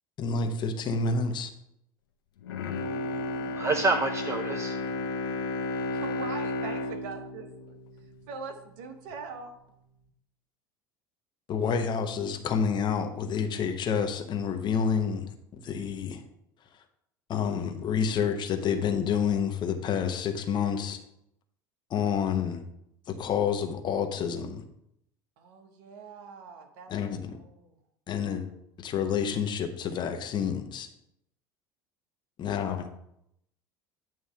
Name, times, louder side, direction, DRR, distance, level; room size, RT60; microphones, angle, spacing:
voice 1, 0.2-1.5 11.5-15.3 15.6-16.2 17.3-21.0 21.9-22.6 23.1-24.6 26.9-27.2 28.1-28.5 28.8-30.9 32.4-32.9, left 6 dB, 40° left, 6 dB, 1.0 m, -28 dB
Bowed string instrument, 2.4-8.7 9.1-9.2, left 2 dB, 75° left, 0.8 m, -33 dB
voice 2, 2.8-4.8, right 3 dB, 25° right, 7 dB, 0.6 m, -29 dB
voice 3, 5.9-7.8 8.0-9.5 25.4-26.9 27.2-27.7, right 5 dB, 65° right, 5 dB, 1.2 m, -42 dB
9.2 x 3.1 x 5.8 m, 0.77 s
figure-of-eight pair, 70°, 12 cm